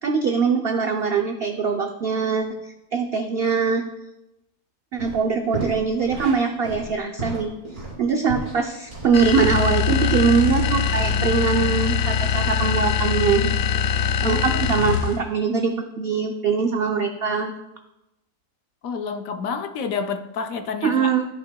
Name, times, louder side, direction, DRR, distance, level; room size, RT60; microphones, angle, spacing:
voice 1, 0.0-3.8 4.9-7.5 8.0-13.5 14.2-17.5 20.8-21.3, right 5 dB, 85° right, 5 dB, 0.5 m, -22 dB
sound 1, 5.0-5.2 5.5-10.8 11.1-11.8, right 2 dB, 30° right, 3.2 m, -33 dB
sound 2, 9.1-15.3, left 7 dB, 90° left, 1.2 m, -22 dB
voice 2, 14.2-14.6 18.8-21.1, left 5 dB, 70° left, 8 dB, 0.9 m, -29 dB
13.5 x 5.9 x 2.2 m, 0.94 s
omnidirectional pair, 1.7 m